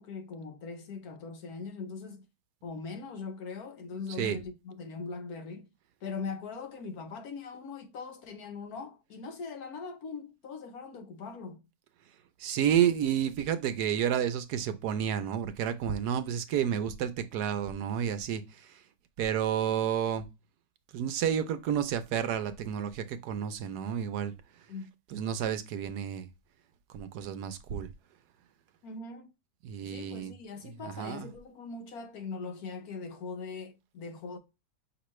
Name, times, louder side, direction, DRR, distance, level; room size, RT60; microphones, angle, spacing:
voice 1, 0.0-2.2 2.6-5.7 6.0-11.6 24.7-24.9 28.8-29.3 29.8-34.4, left 4 dB, 65° left, 1.2 m, -41 dB
voice 2, 12.4-18.4 19.2-20.2 20.9-24.3 25.1-26.3 26.9-27.9 29.6-30.3 30.8-31.3, right 9 dB, 70° right, 1.1 m, -30 dB
6.0 x 2.9 x 3.0 m
omnidirectional pair, 1.8 m